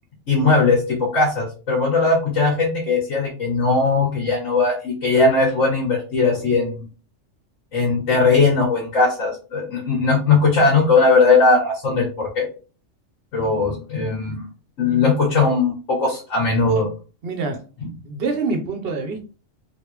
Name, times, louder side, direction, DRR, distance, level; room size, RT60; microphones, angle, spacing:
voice 1, 0.3-6.8 7.7-12.5 13.3-14.5 14.8-16.9 17.8-17.9, left 3 dB, 70° left, -3 dB, 1.4 m, -19 dB
voice 2, 17.2-17.6 18.0-19.2, right 3 dB, 55° right, 4 dB, 0.9 m, -25 dB
3.4 x 2.6 x 3.0 m, 0.35 s
omnidirectional pair, 1.3 m